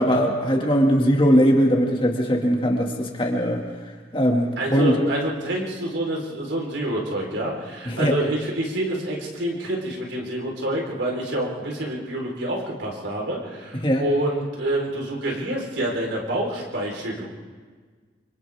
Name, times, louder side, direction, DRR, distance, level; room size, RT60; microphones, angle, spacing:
voice 1, 0.0-3.6 4.1-5.1 7.9-8.1 13.8-14.0, equal, 30° left, 0 dB, 2.3 m, -20 dB
voice 2, 4.6-17.3, right 1 dB, 85° right, -1 dB, 4.4 m, -27 dB
29.0 x 25.0 x 3.7 m, 1.5 s
head